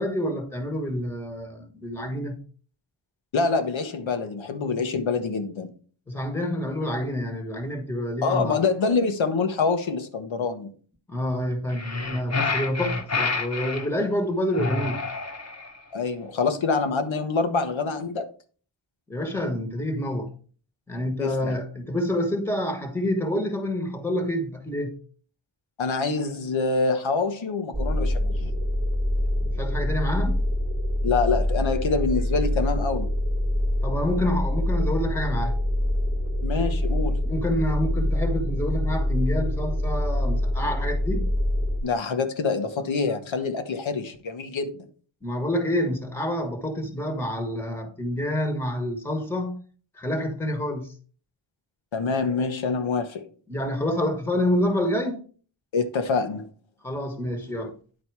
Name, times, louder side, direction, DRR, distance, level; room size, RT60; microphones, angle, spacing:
voice 1, 0.0-2.4 6.1-8.6 11.1-15.0 19.1-20.3 20.9-25.0 29.4-30.4 33.8-35.6 37.2-41.3 45.2-49.6 49.9-50.9 53.5-55.2 56.8-57.7, left 1 dB, 5° left, 1.2 m, -28 dB
voice 2, 3.3-5.7 8.2-10.7 15.9-18.3 21.2-21.6 25.8-28.6 31.0-33.1 36.4-37.3 41.8-44.9 51.9-53.2 55.7-56.5, left 4 dB, 80° left, 1.2 m, -26 dB
sound 1, 11.7-13.9 14.5-15.8, left 3 dB, 35° left, 1.2 m, -28 dB
sound 2, 27.7-41.8, left 1 dB, 15° right, 1.3 m, -25 dB
10.0 x 4.3 x 4.6 m
wide cardioid pair, 105°, 46 cm